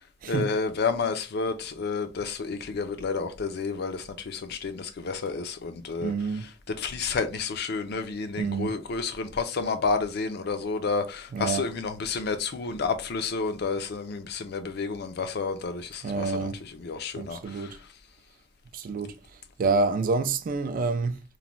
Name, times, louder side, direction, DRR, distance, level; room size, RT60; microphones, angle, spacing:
voice 1, 0.3-6.5 6.8-17.8, left 4 dB, 55° left, 0.4 m, -30 dB
voice 2, 6.0-6.5 8.4-8.8 11.3-11.7 16.0-16.6 17.2-17.8 18.7-19.2 19.6-21.2, right 4 dB, 45° right, 0.3 m, -28 dB
3.1 x 2.1 x 2.4 m
head